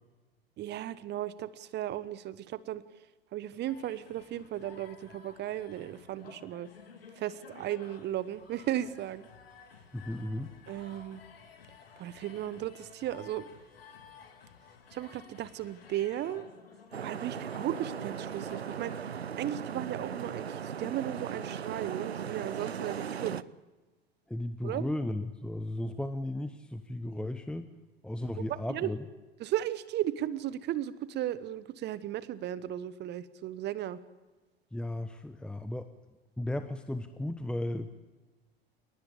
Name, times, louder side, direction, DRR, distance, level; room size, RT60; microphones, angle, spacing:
voice 1, 0.6-2.8 3.3-6.7 7.2-9.3 10.7-11.2 12.0-13.5 14.9-16.5 17.0-19.1 19.4-23.4 24.6-24.9 28.4-28.9 29.4-34.0, right 12 dB, 35° right, 16 dB, 1.2 m, -35 dB
sound 1, 3.7-18.8, left 6 dB, 70° left, 3.5 m, -54 dB
voice 2, 9.9-10.5 24.3-27.6 28.0-29.0 34.7-35.9 36.4-37.9, left 1 dB, 5° left, 9 dB, 1.1 m, -35 dB
sound 2, 16.9-23.4, right 7 dB, 80° right, 0.8 m, -38 dB
29.5 x 19.0 x 8.5 m, 1.2 s
figure-of-eight pair, 80°, 31 cm